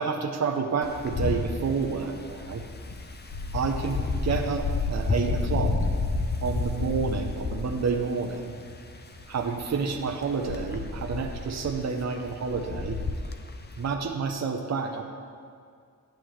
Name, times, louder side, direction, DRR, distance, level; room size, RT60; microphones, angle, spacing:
voice 1, 0.0-2.6 3.5-5.8 6.4-8.5 9.3-13.0 13.8-15.0, right 5 dB, 50° right, 3 dB, 0.7 m, -29 dB
Wind, 0.8-13.9, left 3 dB, 30° left, 0.5 m, -31 dB
11.5 x 10.5 x 3.2 m, 2.2 s
wide cardioid pair, 160°, 34 cm